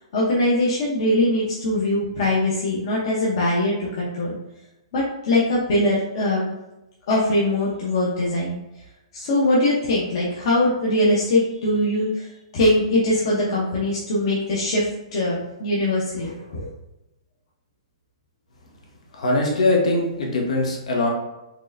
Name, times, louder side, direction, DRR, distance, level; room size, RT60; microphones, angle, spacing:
voice 1, 0.1-4.4 4.9-6.5 7.1-8.6 9.1-12.3 12.5-14.9 15.1-16.7, left 1 dB, 45° left, -6 dB, 0.9 m, -22 dB
voice 2, 19.1-21.1, left 2 dB, 75° left, -1 dB, 1.3 m, -21 dB
4.5 x 3.2 x 2.6 m, 0.95 s
hypercardioid pair, 165°, 4 cm